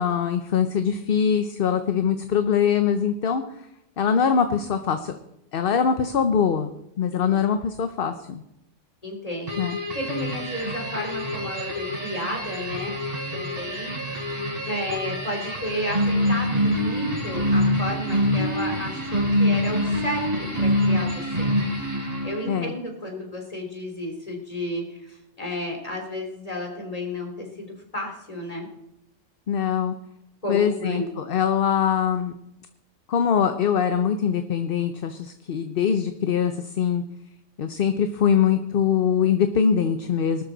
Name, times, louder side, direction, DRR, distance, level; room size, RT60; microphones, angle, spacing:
voice 1, 0.0-3.4 4.0-5.1 5.5-6.7 7.0-8.4 9.6-9.8 22.5-22.8 29.5-29.9 30.5-32.3 33.1-37.0 37.6-40.4, left 7 dB, 50° left, 9 dB, 0.9 m, -23 dB
voice 2, 9.0-9.6 9.9-13.0 13.3-14.0 14.6-20.3 20.6-21.5 22.2-27.7 27.9-28.7 30.4-31.1, left 1 dB, 30° left, 2 dB, 3.5 m, -32 dB
sound 1, 9.5-22.6, equal, 30° right, 3.7 m, -25 dB
19.5 x 12.5 x 4.0 m, 0.83 s
omnidirectional pair, 1.3 m